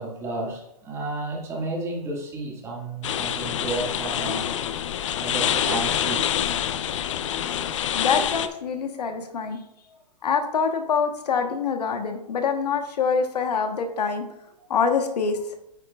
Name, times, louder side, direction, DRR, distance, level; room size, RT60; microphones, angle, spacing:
voice 1, 0.0-4.5 5.2-6.4 11.4-11.5, right 2 dB, 15° right, -2 dB, 1.9 m, -32 dB
sound 1, 3.0-8.5, left 10 dB, 50° left, 0.6 m, -26 dB
voice 2, 7.9-9.6 10.2-14.2 14.7-15.4, left 5 dB, 75° left, 6 dB, 1.2 m, -25 dB
9.1 x 7.9 x 2.4 m, 0.80 s
hypercardioid pair, 150°, 21 cm